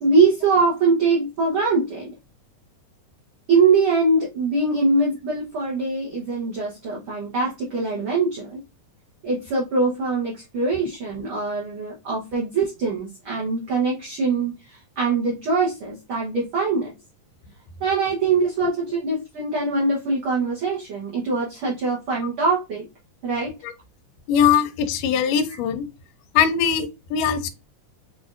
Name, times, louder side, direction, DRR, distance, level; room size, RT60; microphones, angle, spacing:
voice 1, 0.0-2.1 3.5-8.6 9.2-14.5 15.0-16.9 17.8-22.9 23.2-23.5, right 3 dB, 65° right, 1.4 m, -22 dB
voice 2, 24.3-25.9 26.3-27.5, left 8 dB, 90° left, 2.1 m, -21 dB
6.0 x 2.5 x 2.4 m
omnidirectional pair, 3.7 m